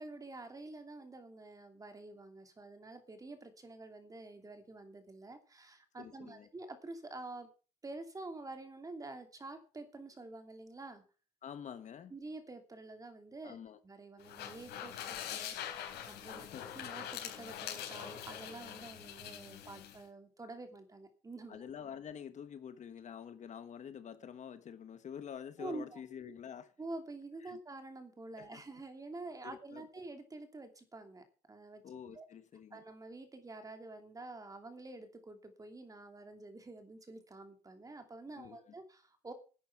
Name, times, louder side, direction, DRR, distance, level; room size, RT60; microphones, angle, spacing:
voice 1, 0.0-7.5 7.8-11.0 12.1-13.6 13.8-15.5 16.1-16.5 16.7-21.6 25.6-26.0 26.8-31.8 32.1-32.3 32.7-39.3, right 2 dB, 20° right, 2.8 m, -48 dB
voice 2, 6.0-6.5 11.4-12.1 13.4-13.8 16.3-16.8 21.5-26.7 27.4-27.6 28.4-28.6 29.4-29.9 31.8-32.8 38.4-38.6, left 8 dB, 45° left, 1.2 m, -47 dB
sound 1, 14.2-20.0, left 10 dB, 80° left, 3.9 m, -44 dB
11.5 x 9.3 x 5.9 m
cardioid pair, 110°, 17 cm